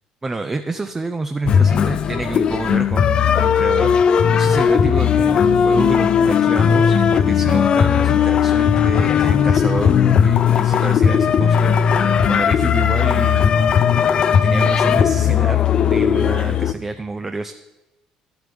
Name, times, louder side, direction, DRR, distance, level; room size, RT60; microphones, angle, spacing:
voice 1, 0.2-13.7 14.3-17.5, right 3 dB, 20° right, 8 dB, 0.5 m, -28 dB
sound 1, 1.4-16.7, left 7 dB, 45° left, 0.5 m, -16 dB
11.5 x 8.0 x 5.2 m, 1.0 s
cardioid pair, 100°, 2 cm